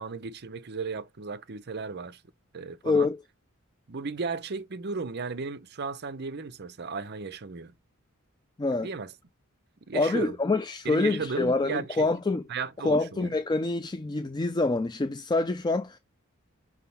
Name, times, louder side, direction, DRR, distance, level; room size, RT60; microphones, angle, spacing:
voice 1, 0.0-2.2 2.5-3.1 3.9-7.7 8.8-9.1 9.9-10.4 10.8-12.1 12.5-13.3, right 4 dB, 50° right, 0.7 m, -35 dB
voice 2, 2.8-3.2 8.6-8.9 9.9-12.4 12.8-16.0, left 3 dB, 20° left, 0.4 m, -26 dB
6.1 x 3.7 x 5.7 m
head